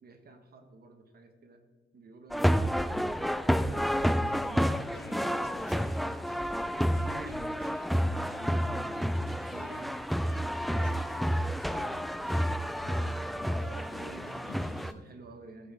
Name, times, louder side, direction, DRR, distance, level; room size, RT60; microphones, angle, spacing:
voice 1, 0.0-1.6 1.9-2.9 3.6-4.7 6.8-9.9 12.8-15.7, right 3 dB, 50° right, 6 dB, 1.4 m, -49 dB
sound 1, 2.3-14.9, equal, ahead, 0.4 m, -30 dB
sound 2, 4.3-14.9, left 2 dB, 45° left, 2.3 m, -55 dB
voice 2, 4.4-6.1 10.6-12.4 14.4-14.8, left 4 dB, 65° left, 4 dB, 1.7 m, -49 dB
14.0 x 8.0 x 3.5 m, 1.3 s
cardioid pair, 90°, 20 cm